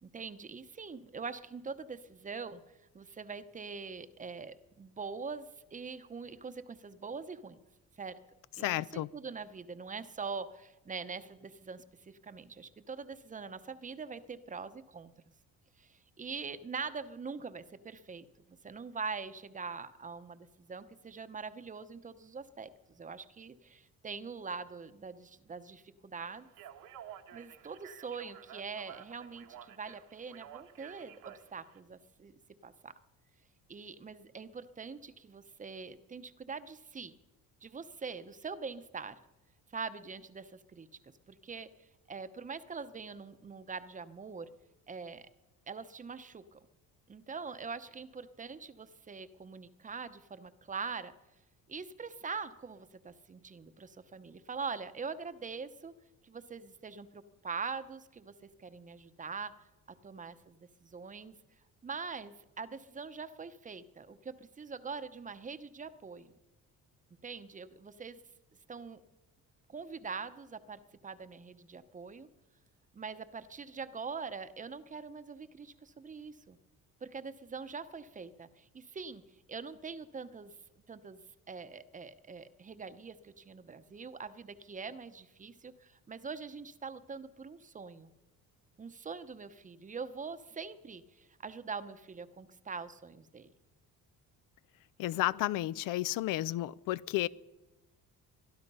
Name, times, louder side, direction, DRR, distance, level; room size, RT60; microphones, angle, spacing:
voice 1, 0.0-7.6 8.0-8.2 8.6-15.1 15.8-26.5 27.3-32.9 33.7-37.2 37.6-39.2 39.7-44.5 44.9-45.3 45.7-46.6 47.1-51.1 51.7-55.9 56.2-59.5 60.0-61.4 61.8-66.3 67.2-68.2 68.7-69.0 69.7-72.3 72.9-76.6 77.0-79.2 79.5-80.6 80.9-81.2 81.5-88.1 88.8-93.5, right 5 dB, 25° right, 0.8 m, -43 dB
voice 2, 8.6-9.1 95.0-97.3, left 15 dB, 80° left, 0.5 m, -32 dB
Speech, 26.5-31.8, right 10 dB, 75° right, 1.3 m, -52 dB
22.5 x 12.0 x 5.5 m
cardioid pair, 125°, 33 cm